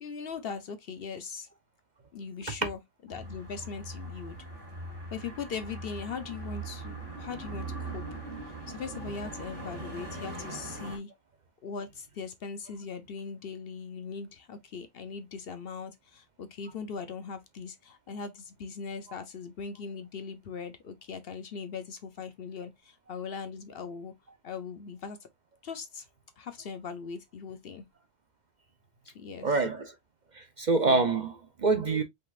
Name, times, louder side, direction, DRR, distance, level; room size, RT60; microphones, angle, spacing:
voice 1, 0.0-1.5 2.1-2.8 3.1-4.4 5.1-8.2 8.5-11.1 11.6-24.1 24.4-25.2 25.6-26.1 26.4-27.8 29.0-29.5, left 5 dB, 60° left, 0.9 m, -40 dB
sound 1, 3.1-11.0, right 2 dB, 80° right, 2.5 m, -40 dB
voice 2, 29.4-29.9 30.3-32.0, right 3 dB, 45° right, 0.7 m, -26 dB
5.3 x 3.9 x 2.4 m
omnidirectional pair, 1.2 m